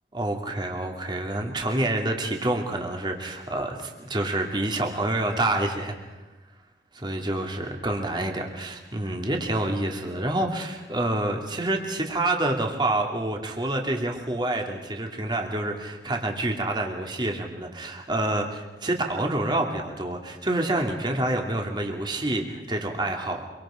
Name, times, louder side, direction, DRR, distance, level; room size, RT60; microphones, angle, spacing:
voice 1, 0.1-5.9 6.9-23.5, right 1 dB, 25° right, 2 dB, 2.6 m, -27 dB
26.5 x 24.5 x 5.1 m, 1.2 s
head